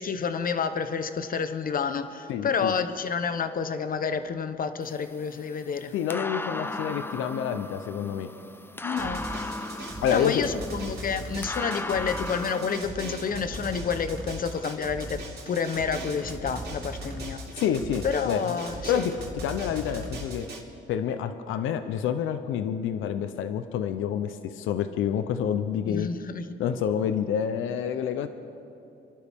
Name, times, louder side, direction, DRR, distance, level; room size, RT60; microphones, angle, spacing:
voice 1, 0.0-5.9 8.8-9.3 9.8-17.4 18.0-19.1 25.9-26.6, left 6 dB, 45° left, 10 dB, 1.0 m, -29 dB
voice 2, 2.3-2.7 5.9-8.3 10.0-10.5 17.6-18.5 18.9-20.5 20.9-26.1 26.6-28.3, left 8 dB, 85° left, 10 dB, 0.7 m, -28 dB
sound 1, 4.8-12.8, left 2 dB, 10° left, 0.6 m, -37 dB
Drum, 9.0-20.6, right 2 dB, 55° right, 3.3 m, -38 dB
26.5 x 12.0 x 3.6 m, 2.9 s
cardioid pair, 90°, 20 cm